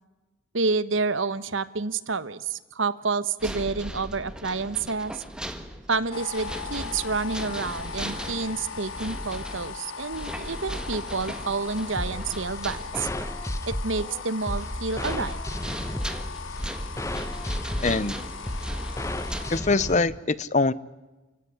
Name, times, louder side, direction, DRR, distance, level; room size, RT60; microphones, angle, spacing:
voice 1, 0.5-5.2 5.9-13.1 13.7-15.4, right 4 dB, 75° right, 15 dB, 1.1 m, -29 dB
sound 1, 3.4-19.5, equal, 5° right, 1.6 m, -38 dB
sound 2, 6.1-19.6, left 6 dB, 80° left, 1.3 m, -39 dB
sound 3, 12.0-20.0, left 1 dB, 15° left, 1.0 m, -33 dB
voice 2, 17.8-18.1 19.5-20.7, left 3 dB, 35° left, 18 dB, 0.8 m, -23 dB
29.5 x 17.0 x 9.8 m, 1.1 s
head